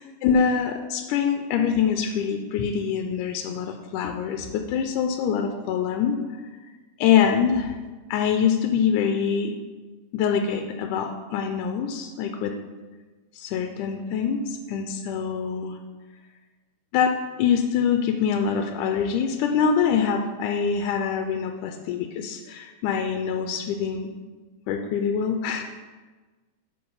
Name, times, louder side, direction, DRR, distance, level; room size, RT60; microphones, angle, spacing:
voice 1, 0.2-6.2 7.0-7.8 8.1-9.6 10.1-12.5 13.4-15.8 16.9-24.1 24.7-25.6, left 7 dB, 85° left, 5 dB, 2.1 m, -24 dB
7.8 x 5.1 x 5.4 m, 1.3 s
omnidirectional pair, 3.6 m